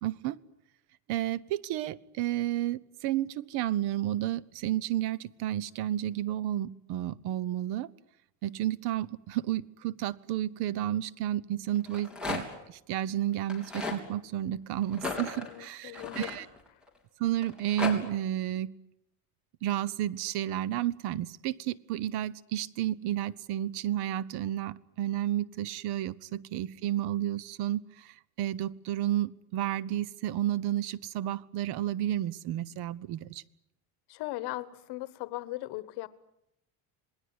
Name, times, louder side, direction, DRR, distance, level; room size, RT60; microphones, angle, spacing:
voice 1, 0.0-0.4 1.1-7.9 8.4-16.5 17.2-18.7 19.6-33.4, right 12 dB, 70° right, 22 dB, 1.0 m, -31 dB
Rattle, 11.8-12.7 13.4-14.0 14.9-16.9 17.4-17.9, left 3 dB, ahead, 3.9 m, -36 dB
voice 2, 15.4-16.4 34.1-36.1, left 18 dB, 70° left, 15 dB, 1.4 m, -38 dB
27.0 x 20.0 x 9.7 m, 0.80 s
cardioid pair, 175°, 41 cm